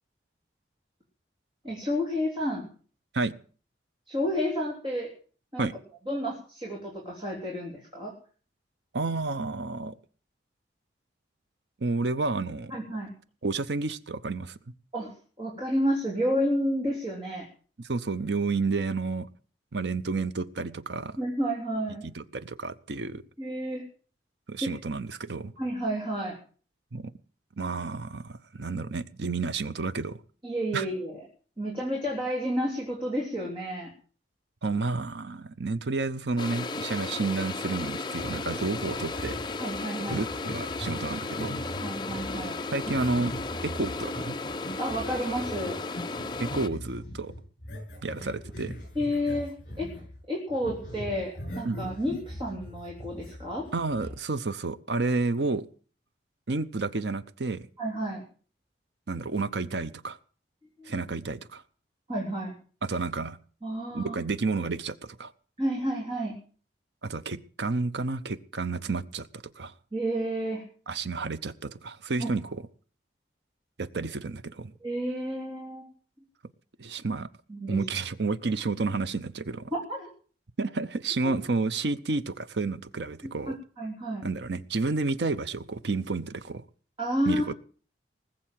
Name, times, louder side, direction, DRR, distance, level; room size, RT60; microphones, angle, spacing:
voice 1, 1.6-2.7 4.1-5.1 5.5-5.7 6.1-8.1 12.7-13.1 14.9-17.5 21.2-22.1 23.4-23.8 24.6-24.7 25.6-26.4 30.4-31.2 31.6-33.9 39.6-40.2 41.8-42.7 44.8-45.8 48.9-50.0 50.3-53.7 57.8-58.2 60.8-60.9 62.1-62.5 63.6-64.2 65.6-66.4 69.9-70.6 72.2-72.3 74.8-75.9 77.5-77.8 79.7-80.1 81.2-81.3 83.2-83.3 83.8-84.3 87.0-87.4, equal, 25° right, 3.4 m, -30 dB
voice 2, 8.9-10.0 11.8-12.7 13.4-14.6 17.8-19.3 19.7-21.2 22.1-23.2 24.5-25.5 26.9-27.1 27.6-30.2 30.7-30.8 34.6-39.4 40.1-41.6 42.7-43.3 43.6-44.4 46.4-47.3 48.0-48.7 51.6-51.8 53.7-55.7 56.5-57.7 59.1-60.2 60.9-61.6 62.8-63.4 63.9-65.3 67.0-69.7 70.9-72.6 73.8-74.7 76.8-77.3 77.7-79.7 80.6-83.6 84.2-86.6 87.3-87.5, right 3 dB, 70° right, 0.7 m, -30 dB
sound 1, 36.4-46.7, left 3 dB, 25° left, 0.6 m, -35 dB
sound 2, 38.1-50.2 50.5-54.1, equal, 45° left, 7.0 m, -41 dB
20.0 x 7.5 x 7.6 m
head